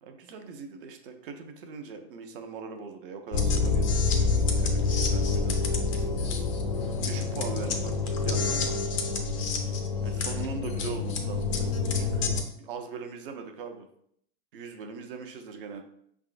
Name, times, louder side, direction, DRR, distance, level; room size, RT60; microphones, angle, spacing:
voice 1, 0.0-5.6 5.9-6.4 7.1-8.8 10.0-13.9 14.5-15.8, right 5 dB, 50° right, 6 dB, 0.6 m, -41 dB
sound 1, 3.3-12.4, left 4 dB, 30° left, 0.4 m, -27 dB
5.6 x 3.5 x 2.5 m, 0.68 s
supercardioid pair, 165°, 37 cm